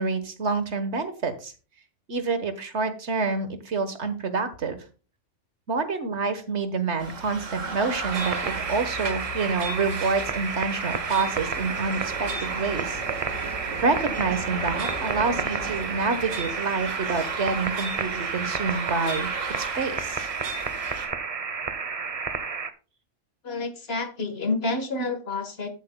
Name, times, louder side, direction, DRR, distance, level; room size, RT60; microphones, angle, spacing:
voice 1, 0.0-1.5 2.1-4.8 5.7-13.0 13.8-19.3 19.6-20.3, right 4 dB, 65° right, 10 dB, 1.5 m, -27 dB
sound 1, 7.0-21.1, right 3 dB, 85° right, 1.9 m, -34 dB
sound 2, 8.1-22.7, right 5 dB, 35° right, 0.7 m, -32 dB
voice 2, 23.4-25.7, left 3 dB, 55° left, 8 dB, 1.6 m, -29 dB
14.5 x 7.9 x 2.2 m, 0.33 s
omnidirectional pair, 1.3 m